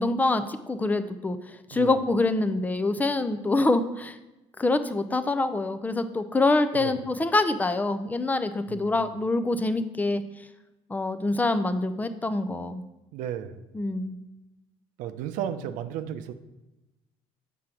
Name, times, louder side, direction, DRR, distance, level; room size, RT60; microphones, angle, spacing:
voice 1, 0.0-4.2 4.6-10.2 10.9-12.8 13.7-14.2, left 2 dB, 10° left, 11 dB, 0.5 m, -25 dB
voice 2, 8.7-9.0 13.1-13.6 15.0-16.3, right 9 dB, 80° right, 9 dB, 0.6 m, -34 dB
7.3 x 3.8 x 5.9 m, 1.0 s
cardioid pair, 120°, 13 cm